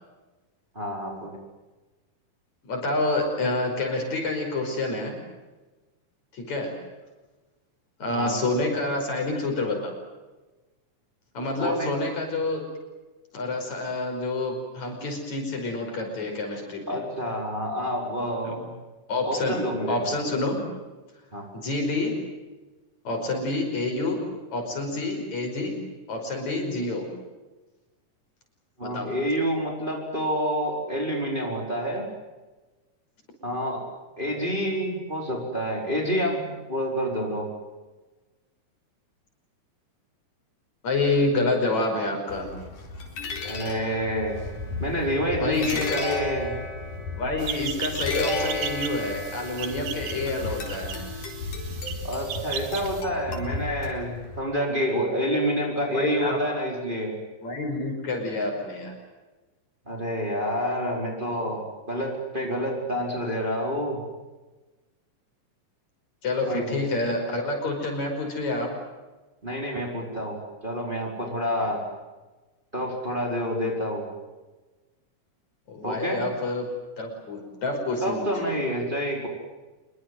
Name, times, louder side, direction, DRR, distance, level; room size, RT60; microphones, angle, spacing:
voice 1, 0.7-1.4 8.1-8.4 11.6-11.9 16.9-18.7 19.2-20.0 21.3-21.4 28.8-32.1 33.4-33.8 34.2-37.5 43.4-44.5 44.8-46.6 52.0-57.2 59.9-64.0 66.5-66.8 69.4-70.4 70.6-71.8 72.7-74.1 75.8-76.2 78.0-79.3, equal, 15° right, 0 dB, 4.9 m, -28 dB
voice 2, 2.6-5.2 6.3-6.7 8.0-9.9 11.3-12.6 13.3-17.0 18.4-18.6 19.1-20.6 21.5-22.2 23.0-24.2 24.5-25.7 26.1-27.1 28.8-29.1 40.8-42.5 45.4-46.1 47.2-50.9 55.9-56.4 57.4-58.9 66.2-68.7 71.6-71.7 75.7-76.7 77.0-78.6, left 2 dB, 60° left, 3 dB, 6.6 m, -28 dB
sound 1, 42.3-54.4, left 3 dB, 80° left, 5.9 m, -33 dB
sound 2, 47.4-53.0, right 8 dB, 90° right, 3.5 m, -37 dB
26.5 x 23.5 x 7.9 m, 1.2 s
omnidirectional pair, 3.7 m